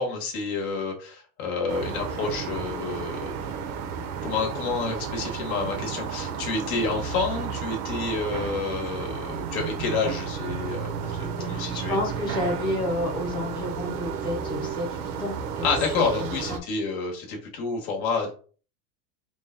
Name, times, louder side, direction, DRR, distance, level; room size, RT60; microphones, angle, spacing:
voice 1, 0.0-3.5 4.2-12.0 15.6-18.3, left 4 dB, 65° left, 1 dB, 1.5 m, -29 dB
sound 1, 1.7-16.6, right 7 dB, 80° right, 0.9 m, -32 dB
voice 2, 11.4-15.7 16.0-16.6, left 1 dB, 10° left, 0 dB, 0.6 m, -30 dB
3.7 x 2.3 x 3.8 m, 0.40 s
supercardioid pair, 135°, 45 cm